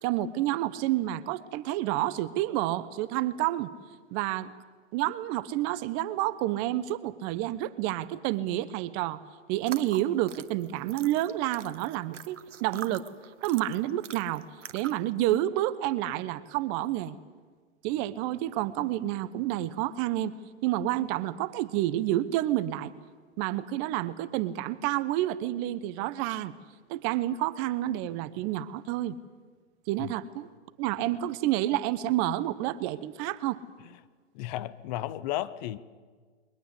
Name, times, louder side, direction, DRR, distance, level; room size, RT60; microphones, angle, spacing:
voice 1, 0.0-3.7 4.1-4.5 4.9-9.2 9.5-13.1 13.4-14.4 14.7-17.2 17.8-20.3 20.6-22.9 23.4-26.5 26.9-29.2 29.9-30.5 30.8-33.6, right 14 dB, 35° right, 15 dB, 1.0 m, -29 dB
sound 1, 9.6-15.1, right 8 dB, 85° right, 1.3 m, -44 dB
voice 2, 34.3-35.8, left 14 dB, 40° left, 16 dB, 0.8 m, -34 dB
22.0 x 20.0 x 8.3 m, 1.5 s
hypercardioid pair, 125°, 36 cm